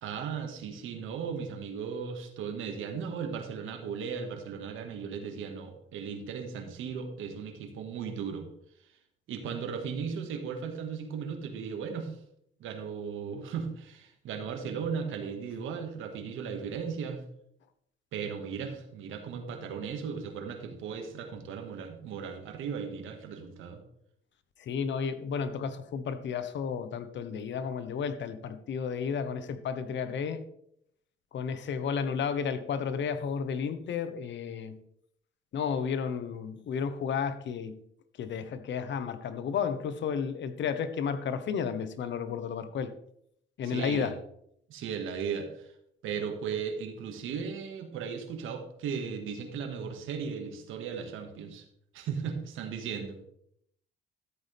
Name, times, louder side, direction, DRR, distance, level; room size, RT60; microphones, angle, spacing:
voice 1, 0.0-8.5 9.3-12.2 12.6-17.2 18.1-23.8 43.6-44.1 44.7-45.7 46.0-51.6 51.9-53.2, right 6 dB, 85° right, 4 dB, 1.9 m, -36 dB
voice 2, 24.6-30.4 31.3-34.8 35.5-37.8 38.2-42.9 43.6-44.1, left 6 dB, 65° left, 11 dB, 1.1 m, -32 dB
13.5 x 8.4 x 3.5 m, 0.70 s
cardioid pair, 90°, 20 cm